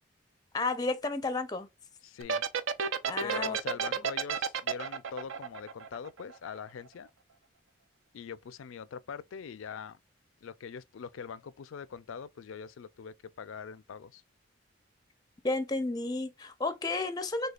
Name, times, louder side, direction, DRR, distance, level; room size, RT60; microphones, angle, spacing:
voice 1, 0.5-1.7 3.1-3.6 15.4-17.5, left 3 dB, 20° left, 0.4 m, -32 dB
voice 2, 2.0-2.5 3.2-7.1 8.1-10.0 10.4-14.2, left 6 dB, 85° left, 0.4 m, -43 dB
sound 1, 2.2-6.6, right 6 dB, 75° right, 0.5 m, -31 dB
6.3 x 2.2 x 2.3 m
head